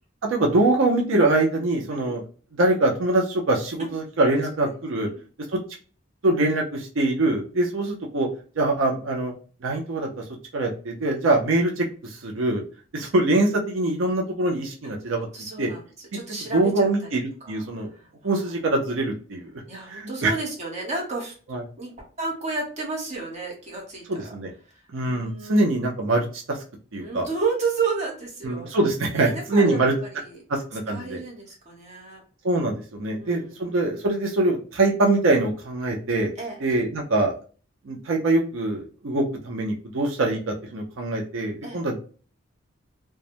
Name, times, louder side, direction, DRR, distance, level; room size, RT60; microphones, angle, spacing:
voice 1, 0.3-2.2 2.5-5.1 6.2-8.3 8.6-9.3 9.6-10.2 10.5-12.6 12.9-15.3 15.6-15.7 16.1-16.2 16.5-17.9 18.2-19.5 19.9-20.3 21.5-21.6 24.1-24.5 24.9-26.6 26.9-27.2 28.4-29.9 30.5-31.2 32.4-36.3 36.6-37.3 37.9-42.0, right 2 dB, 85° right, 1 dB, 0.5 m, -23 dB
voice 2, 15.3-15.8 16.1-16.9 17.4-18.6 19.7-21.3 21.8-24.3 25.0-25.7 27.0-28.7 29.1-30.4 30.9-32.2 33.0-33.6 36.4-36.6 41.6-41.8, right 4 dB, 35° right, -1 dB, 0.8 m, -32 dB
2.2 x 2.0 x 2.7 m, 0.39 s
head